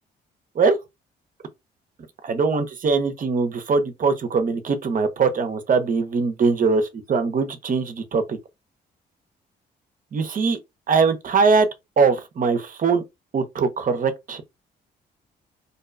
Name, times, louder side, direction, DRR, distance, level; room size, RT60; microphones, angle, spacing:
voice 1, 2.2-8.4 10.1-10.6 10.9-11.7 12.0-13.0 13.3-14.4, right 4 dB, 45° right, 0.7 m, -21 dB
2.6 x 2.2 x 2.4 m
cardioid pair, 70°, 19 cm